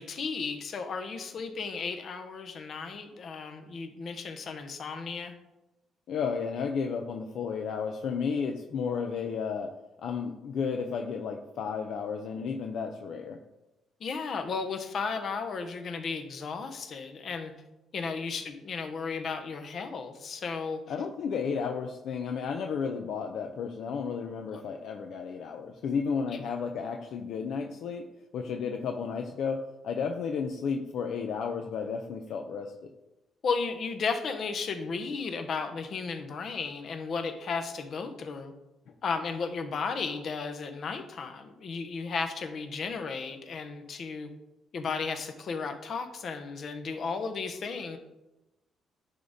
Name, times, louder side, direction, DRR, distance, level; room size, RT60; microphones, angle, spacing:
voice 1, 0.0-5.3 14.0-17.5 17.9-20.8 24.5-24.6 26.3-26.4 33.4-38.5 39.0-44.3 44.7-48.0, left 5 dB, 55° left, 7 dB, 0.9 m, -34 dB
voice 2, 6.1-9.7 10.0-13.4 20.9-28.1 28.3-32.9, left 6 dB, 75° left, 4 dB, 0.6 m, -33 dB
10.0 x 3.6 x 4.1 m, 1.0 s
cardioid pair, 90°, 0 cm